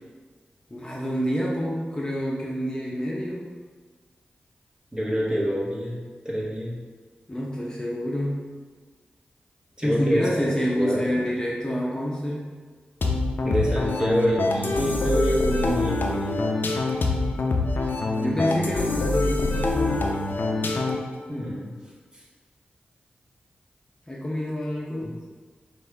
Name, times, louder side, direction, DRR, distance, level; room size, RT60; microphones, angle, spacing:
voice 1, 0.7-3.4 7.3-8.3 9.8-12.5 18.2-20.1 24.1-25.1, equal, 20° left, -4 dB, 0.8 m, -28 dB
voice 2, 4.9-6.0 6.2-6.8 9.8-10.5 10.7-11.2 13.4-16.4 21.3-21.7 22.1-22.2 25.0-25.1, equal, 20° right, -5 dB, 1.4 m, -26 dB
sound 1, 13.0-21.1, left 2 dB, 70° left, 0.5 m, -25 dB
5.4 x 2.6 x 3.4 m, 1.5 s
cardioid pair, 45°, 4 cm